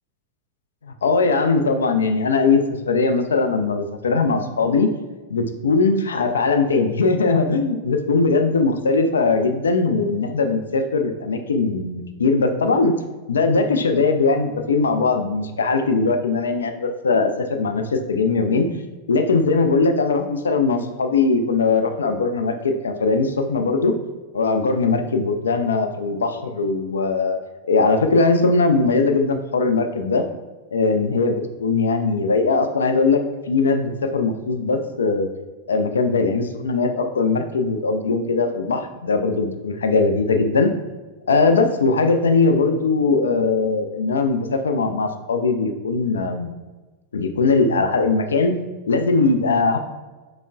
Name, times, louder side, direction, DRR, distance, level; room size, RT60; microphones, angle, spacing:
voice 1, 0.8-4.9 5.3-12.9 13.3-18.7 19.1-23.9 24.3-27.4 27.6-30.2 30.7-33.2 33.5-35.3 35.7-40.7 41.3-46.5 47.1-48.5 48.9-49.8, left 4 dB, 70° left, 6 dB, 0.3 m, -20 dB
5.0 x 2.0 x 2.3 m, 1.2 s
figure-of-eight pair, 90°, 0 cm